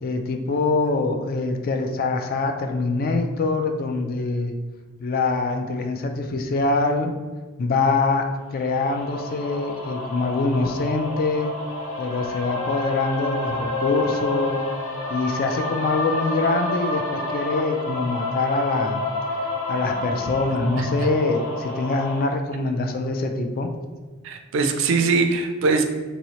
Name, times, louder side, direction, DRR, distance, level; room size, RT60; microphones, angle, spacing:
voice 1, 0.0-4.6 5.0-7.1 7.6-8.3 8.5-11.5 12.0-14.6 15.1-19.0 19.4-23.7, left 3 dB, 45° left, 5 dB, 0.3 m, -24 dB
sound 1, 8.6-22.2, left 2 dB, 90° left, 0.9 m, -29 dB
voice 2, 20.8-21.1 24.2-25.8, right 4 dB, 70° right, 5 dB, 0.4 m, -22 dB
2.9 x 2.7 x 2.9 m, 1.3 s
head